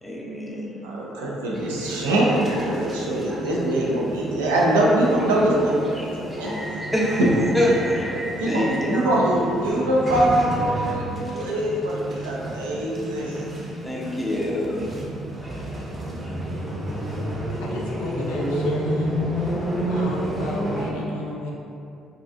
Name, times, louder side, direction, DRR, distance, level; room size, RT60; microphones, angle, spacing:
voice 1, 0.0-0.8 6.0-6.4 6.9-7.2 7.5-9.5 13.8-14.8, equal, 10° left, -4 dB, 0.6 m, -26 dB
voice 2, 0.8-6.8 7.2-7.3 8.4-13.8, right 1 dB, 90° right, -4 dB, 0.4 m, -23 dB
sound 1, 1.5-20.9, right 1 dB, 30° right, 0.6 m, -30 dB
voice 3, 17.6-19.6 19.9-21.5, left 2 dB, 80° left, -2 dB, 0.3 m, -33 dB
2.4 x 2.2 x 2.5 m, 2.5 s
hypercardioid pair, 55°, 0 cm